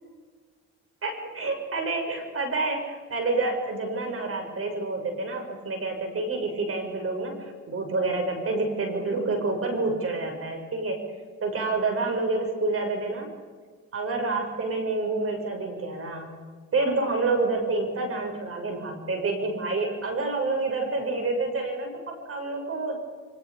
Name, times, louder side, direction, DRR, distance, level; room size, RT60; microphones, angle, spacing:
voice 1, 1.0-11.1 11.4-13.3 13.9-16.3 16.7-23.0, right 3 dB, 50° right, 3 dB, 7.1 m, -28 dB
28.5 x 24.5 x 5.3 m, 1.5 s
cardioid pair, 90°, 30 cm